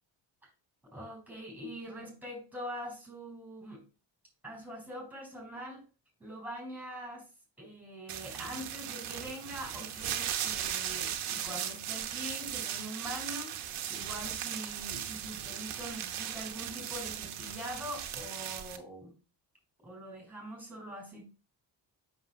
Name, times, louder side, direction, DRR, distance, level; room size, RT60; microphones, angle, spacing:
voice 1, 0.9-3.8 4.4-5.8 6.2-7.2 7.6-13.6 13.9-19.1 19.8-21.2, equal, 5° right, 0 dB, 4.2 m, -43 dB
sound 1, 8.1-18.8, right 10 dB, 85° right, 1.0 m, -37 dB
7.9 x 6.3 x 2.4 m, 0.31 s
cardioid pair, 80°, 48 cm